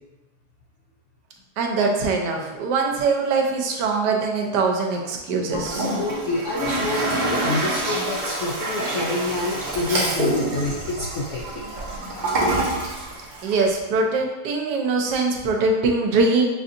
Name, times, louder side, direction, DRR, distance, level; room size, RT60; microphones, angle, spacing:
voice 1, 1.6-5.9 13.4-16.4, right 3 dB, 80° right, 1 dB, 1.2 m, -22 dB
voice 2, 5.5-11.7, left 2 dB, 75° left, -3 dB, 0.6 m, -28 dB
Toilet flush, 5.5-13.7, right 1 dB, 45° right, 0.6 m, -26 dB
5.6 x 2.6 x 2.5 m, 1.1 s
omnidirectional pair, 1.8 m